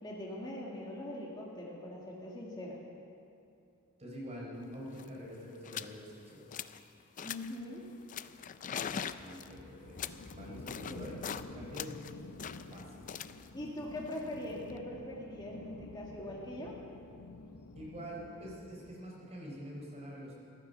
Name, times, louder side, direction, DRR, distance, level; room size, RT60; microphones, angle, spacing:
voice 1, 0.0-2.8 7.2-7.8 10.9-11.0 13.5-16.8, left 1 dB, 20° left, -4 dB, 2.0 m, -42 dB
voice 2, 4.0-6.5 9.1-12.0 12.7-13.1 17.7-20.3, equal, 30° right, -3 dB, 4.2 m, -46 dB
sound 1, 4.6-4.7 4.9-5.2 5.6-6.0 6.3-6.8 7.2-7.6 8.1-11.5 11.7-14.8, left 8 dB, 35° left, 0.4 m, -42 dB
sound 2, 7.4-18.9, left 3 dB, 75° left, 0.8 m, -51 dB
15.0 x 12.5 x 6.7 m, 2.6 s
head